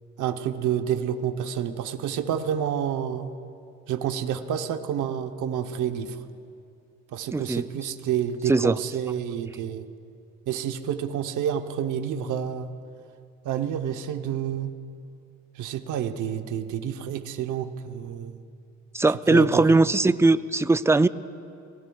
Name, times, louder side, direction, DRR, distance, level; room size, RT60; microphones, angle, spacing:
voice 1, 0.2-3.3 3.9-6.2 7.1-9.9 10.5-12.7 13.4-14.7 15.6-18.4 19.3-19.6, right 9 dB, 80° right, 7 dB, 0.9 m, -29 dB
voice 2, 7.3-7.6 8.5-8.8 18.9-21.1, right 3 dB, 10° right, 14 dB, 0.3 m, -20 dB
26.5 x 18.5 x 2.3 m, 2.4 s
cardioid pair, 90°, 30 cm